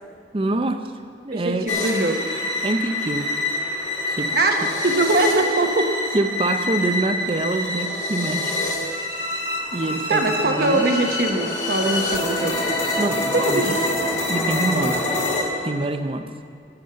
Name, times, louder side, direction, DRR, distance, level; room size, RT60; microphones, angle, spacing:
voice 1, 0.3-0.8 1.2-1.7 2.6-3.3 4.2-4.3 6.1-8.6 9.7-10.8 13.0-13.6 14.3-15.0 15.6-16.3, right 2 dB, 30° right, 8 dB, 0.6 m, -25 dB
voice 2, 1.3-2.2 4.3-4.6 4.8-5.9 10.1-12.6 13.3-14.0, right 2 dB, 60° right, 3 dB, 1.1 m, -22 dB
sound 1, 1.7-15.4, left 2 dB, 40° left, 2.1 m, -26 dB
sound 2, 9.0-15.4, left 1 dB, 20° left, 0.9 m, -35 dB
11.5 x 7.2 x 8.0 m, 2.3 s
head